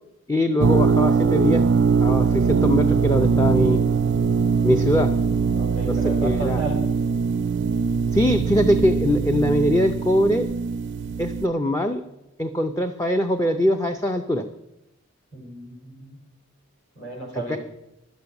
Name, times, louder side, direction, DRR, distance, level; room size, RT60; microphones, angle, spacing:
voice 1, 0.3-1.6 2.0-3.8 4.6-5.1 5.9-6.0 6.2-6.6 8.1-10.5 11.2-12.0 12.4-14.4 17.5-17.6, equal, 15° left, 6 dB, 0.5 m, -22 dB
sound 1, 0.6-11.5, right 5 dB, 55° right, 0.4 m, -21 dB
voice 2, 5.6-6.8 15.3-16.2 16.9-17.6, right 2 dB, 55° left, 0 dB, 4.9 m, -33 dB
11.0 x 8.1 x 7.0 m, 0.90 s
head